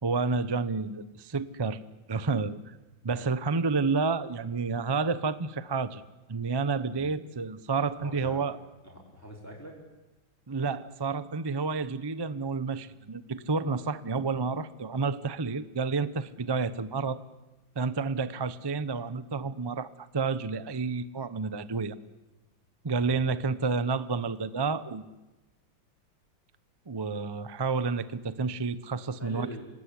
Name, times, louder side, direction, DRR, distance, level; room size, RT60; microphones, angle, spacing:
voice 1, 0.0-1.8 2.1-2.7 3.0-6.0 6.3-8.6 10.5-17.2 17.7-21.9 22.8-25.1 26.9-29.6, right 4 dB, 35° right, 14 dB, 0.4 m, -30 dB
voice 2, 8.0-8.4 8.8-9.7 23.0-23.3 29.2-29.6, equal, 5° left, -3 dB, 5.3 m, -44 dB
26.5 x 20.0 x 9.9 m, 1.1 s
omnidirectional pair, 2.1 m